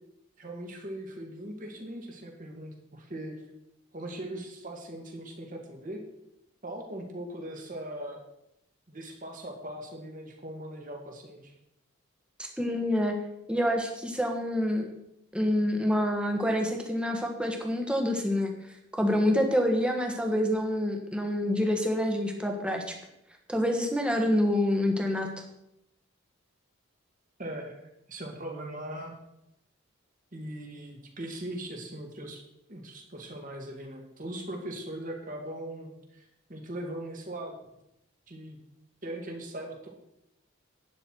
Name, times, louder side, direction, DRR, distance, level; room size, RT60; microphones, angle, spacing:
voice 1, 0.4-3.4 3.9-6.0 6.6-8.2 8.9-11.5 27.4-27.8 28.1-29.1 30.3-32.4 32.7-37.6 38.3-38.6 39.0-39.9, right 1 dB, 40° right, 2 dB, 2.1 m, -40 dB
voice 2, 12.4-13.1 13.5-14.9 15.3-18.5 18.9-22.8 23.5-25.3, left 1 dB, 5° right, 2 dB, 1.5 m, -27 dB
11.5 x 9.5 x 4.6 m, 0.83 s
head